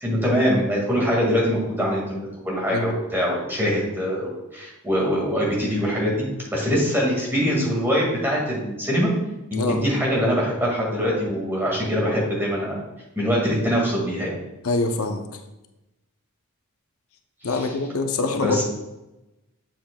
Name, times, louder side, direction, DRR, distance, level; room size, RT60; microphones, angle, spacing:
voice 1, 0.0-6.3 6.5-9.1 9.5-12.8 13.2-14.4 17.5-17.7 18.3-18.6, equal, 10° right, -3 dB, 1.8 m, -23 dB
voice 2, 14.6-15.2 17.4-18.6, left 3 dB, 70° left, 5 dB, 0.6 m, -24 dB
7.4 x 7.2 x 2.2 m, 0.98 s
head